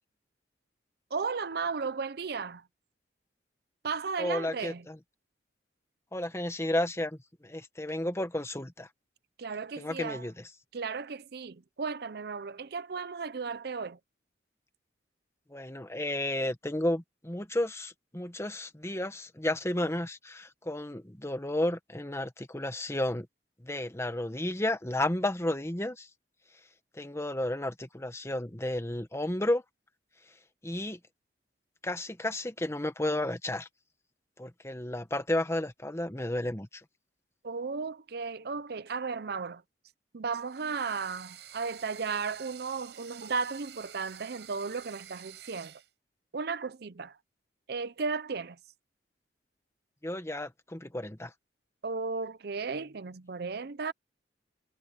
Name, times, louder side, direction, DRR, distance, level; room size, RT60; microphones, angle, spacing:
voice 1, 1.1-2.6 3.8-4.8 9.4-10.2 10.7-14.0 37.4-39.6 40.1-45.7 46.3-47.2 47.7-48.6 51.8-53.9, right 5 dB, 60° right, 0.6 m, -35 dB
voice 2, 4.2-5.0 6.1-8.9 9.8-10.5 15.5-23.3 23.6-26.1 26.9-29.6 30.6-31.0 31.8-33.7 34.4-36.8 50.0-51.3, left 1 dB, 15° left, 1.4 m, -32 dB
sound 1, 40.4-45.9, right 11 dB, 80° right, 5.5 m, -50 dB
head